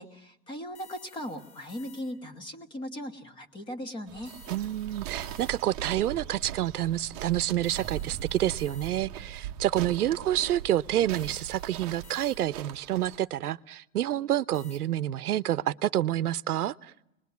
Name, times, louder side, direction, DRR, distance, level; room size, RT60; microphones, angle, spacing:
voice 1, 0.0-4.3, equal, 10° left, 6 dB, 1.3 m, -38 dB
sound 1, 0.7-2.4 4.2-5.9 7.6-9.3 11.1-12.8 14.5-14.8, left 5 dB, 75° left, 3.3 m, -54 dB
sound 2, 4.1-13.2, right 11 dB, 25° right, 1.0 m, -40 dB
voice 2, 4.5-16.9, right 12 dB, 85° right, 16 dB, 0.9 m, -28 dB
30.0 x 21.0 x 9.4 m, 0.95 s
hypercardioid pair, 165°, 44 cm